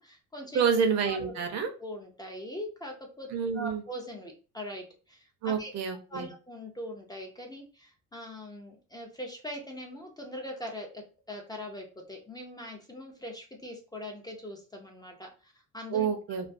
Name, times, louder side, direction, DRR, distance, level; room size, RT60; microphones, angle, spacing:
voice 1, 0.0-0.6 1.0-1.3 1.8-3.3 3.5-5.7 6.1-16.1, equal, 15° left, 1 dB, 0.4 m, -41 dB
voice 2, 0.5-1.7 3.3-3.8 5.4-6.3 15.9-16.5, right 6 dB, 55° right, 5 dB, 0.6 m, -28 dB
2.4 x 2.2 x 2.4 m, 0.35 s
cardioid pair, 130°, 31 cm